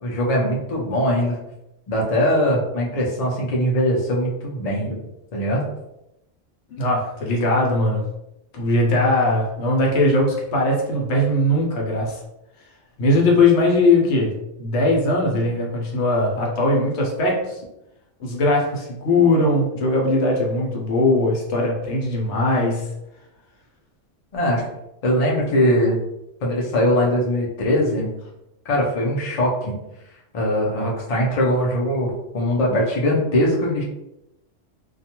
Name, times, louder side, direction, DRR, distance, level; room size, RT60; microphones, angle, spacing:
voice 1, 0.0-1.4 1.9-4.9 5.3-5.6 24.3-24.6 25.0-26.0 26.4-28.1 28.6-29.7 30.3-33.8, equal, 45° left, -3 dB, 0.6 m, -21 dB
voice 2, 6.7-8.1 8.5-12.2 13.0-17.6 18.2-22.9, left 2 dB, 70° left, -2 dB, 1.0 m, -20 dB
2.4 x 2.2 x 2.8 m, 0.87 s
omnidirectional pair, 1.2 m